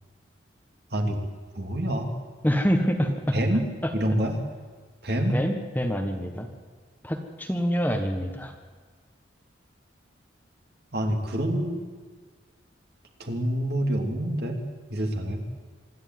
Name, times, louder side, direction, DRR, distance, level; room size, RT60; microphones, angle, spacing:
voice 1, 1.5-2.1 3.3-3.6 3.9-4.3 5.0-5.3 10.9-11.8 13.2-14.6 14.9-15.4, right 1 dB, 55° right, 3 dB, 3.0 m, -26 dB
voice 2, 2.4-3.4 3.8-3.9 5.3-6.5 7.0-8.5, equal, 10° left, 5 dB, 1.4 m, -26 dB
25.5 x 12.0 x 9.4 m, 1.5 s
head